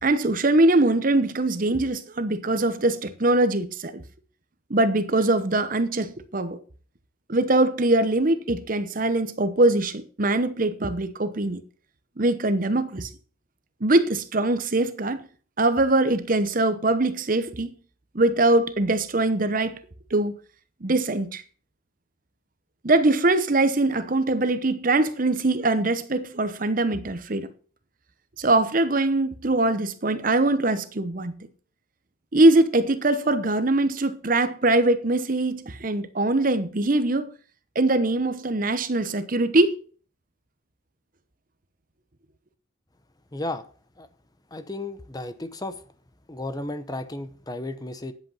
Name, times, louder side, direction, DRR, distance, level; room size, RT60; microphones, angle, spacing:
voice 1, 0.0-4.0 4.7-6.6 7.3-11.6 12.2-13.1 13.8-15.2 15.6-17.7 18.1-19.8 20.1-20.3 20.8-21.4 22.8-27.5 28.4-31.4 32.3-37.3 37.7-39.8, right 2 dB, 40° right, 0.9 m, -22 dB
voice 2, 43.3-43.6 44.0-44.1 44.5-45.8 46.3-48.1, left 2 dB, 20° left, 0.8 m, -33 dB
10.5 x 8.2 x 5.5 m
head